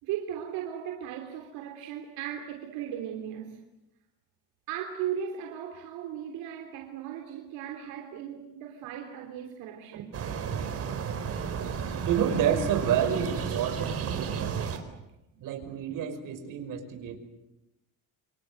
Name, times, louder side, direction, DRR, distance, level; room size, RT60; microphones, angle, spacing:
voice 1, 0.0-3.6 4.7-10.2 15.3-15.4, right 9 dB, 85° right, 3.5 m, -37 dB
sound 1, 10.1-14.8, right 7 dB, 40° right, 4.2 m, -33 dB
voice 2, 12.0-14.6 15.4-17.2, right 8 dB, 65° right, 5.8 m, -29 dB
28.0 x 26.0 x 8.0 m
cardioid pair, 135°, 35 cm